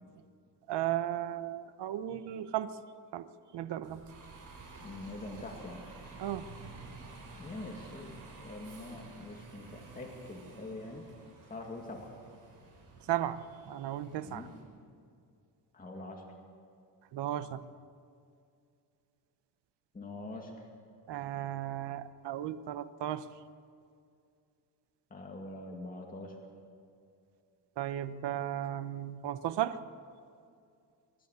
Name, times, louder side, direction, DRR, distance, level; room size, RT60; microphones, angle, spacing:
voice 1, 0.7-2.7 3.1-3.3 3.5-4.0 6.2-6.4 13.1-14.5 17.1-17.6 21.1-23.3 27.8-29.8, right 12 dB, 70° right, 13 dB, 1.0 m, -35 dB
Bus, 3.8-14.6, right 3 dB, 50° right, 6.6 m, -51 dB
voice 2, 4.8-5.8 7.4-11.0 11.5-12.1 14.2-14.6 15.7-16.3 19.9-20.7 25.1-26.4, left 2 dB, 20° left, 0 dB, 2.2 m, -44 dB
26.5 x 12.5 x 8.3 m, 2.4 s
cardioid pair, 140°, 43 cm